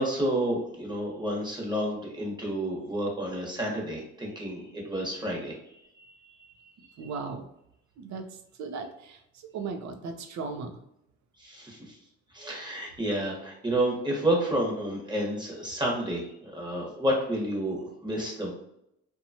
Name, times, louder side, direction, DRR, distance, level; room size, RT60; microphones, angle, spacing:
voice 1, 0.0-5.6 6.0-6.1 7.0-7.1 11.4-12.0 12.3-18.5, right 1 dB, 15° right, -2 dB, 1.1 m, -30 dB
voice 2, 7.0-7.5 8.0-10.8, right 4 dB, 65° right, 5 dB, 0.6 m, -37 dB
2.8 x 2.3 x 2.7 m, 0.78 s
cardioid pair, 90°, 30 cm